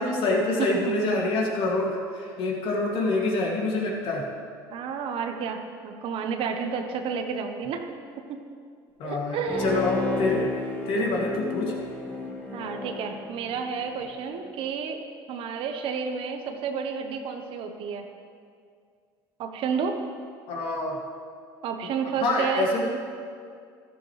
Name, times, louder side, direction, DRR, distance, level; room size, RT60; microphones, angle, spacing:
voice 1, 0.0-4.3 9.0-10.5 10.9-11.7 20.5-21.0 22.2-22.9, left 2 dB, 60° left, -2 dB, 2.6 m, -26 dB
voice 2, 0.6-1.0 4.7-7.9 8.3-8.4 9.0-9.9 12.5-15.0 15.3-18.1 19.4-20.0 21.6-22.7, right 6 dB, 60° right, 5 dB, 1.2 m, -31 dB
Bowed string instrument, 9.5-14.1 14.5-14.6, left 3 dB, 15° left, 2.0 m, -33 dB
13.0 x 12.0 x 3.4 m, 2.2 s
supercardioid pair, 90°, 10 cm